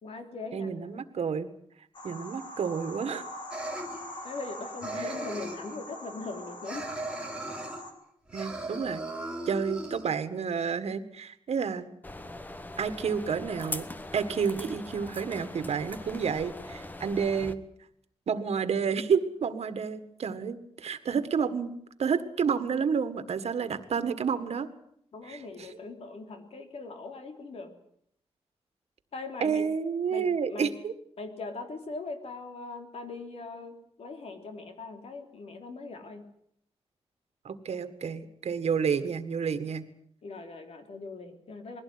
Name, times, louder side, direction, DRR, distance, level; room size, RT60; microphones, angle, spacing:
voice 1, 0.0-1.0 4.2-6.9 25.1-27.8 29.1-29.7 30.1-30.7 31.2-36.2 40.2-41.8, left 3 dB, 70° left, 5 dB, 3.4 m, -40 dB
voice 2, 0.5-1.5 2.0-3.2 5.0-5.1 8.3-9.0 9.5-11.9 12.8-13.9 14.1-17.6 18.3-21.7 22.0-24.7 25.3-25.8 29.4-30.9 37.4-39.9, right 6 dB, 90° right, 11 dB, 1.7 m, -30 dB
sound 1, 1.9-7.9, left 1 dB, 45° left, 3.9 m, -42 dB
sound 2, 3.5-4.5 4.8-5.7 6.6-7.8 8.3-10.1, right 1 dB, 10° right, 3.2 m, -37 dB
sound 3, 12.0-17.5, left 1 dB, 15° left, 1.1 m, -41 dB
21.5 x 16.5 x 9.6 m, 0.70 s
wide cardioid pair, 170°, 11 cm